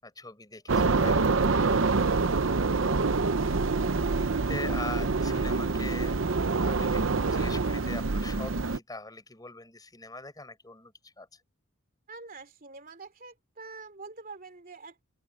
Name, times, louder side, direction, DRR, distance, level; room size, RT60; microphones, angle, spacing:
voice 1, 0.0-1.4 3.7-3.8 4.1-11.4, left 2 dB, 20° left, 5.9 m, -42 dB
sound 1, 0.7-8.8, right 3 dB, 60° right, 0.8 m, -26 dB
voice 2, 1.3-2.4 12.1-15.0, right 4 dB, 40° right, 3.0 m, -46 dB
head